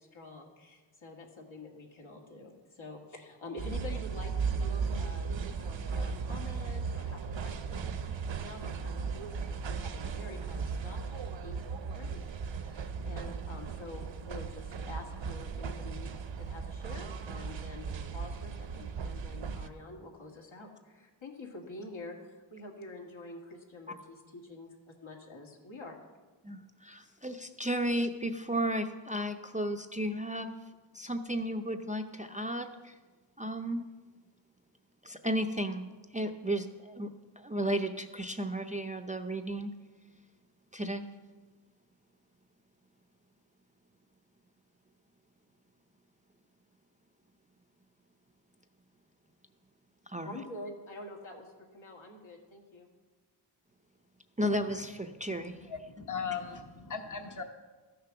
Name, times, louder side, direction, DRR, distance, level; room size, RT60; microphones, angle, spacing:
voice 1, 0.0-11.6 11.9-16.1 16.4-24.8 25.0-26.0 50.2-52.9, left 2 dB, 70° left, 1 dB, 2.1 m, -47 dB
sound 1, 3.6-19.7, right 5 dB, 65° right, 0.7 m, -36 dB
voice 2, 26.4-30.5 30.9-33.0 33.4-33.8 35.0-37.1 37.4-39.7 40.7-41.1 50.1-50.4 54.4-55.7, right 1 dB, 15° right, 6 dB, 0.5 m, -34 dB
voice 3, 55.4-57.4, left 6 dB, 40° left, 5 dB, 1.0 m, -38 dB
13.5 x 6.7 x 5.9 m, 1.3 s
wide cardioid pair, 100°, 49 cm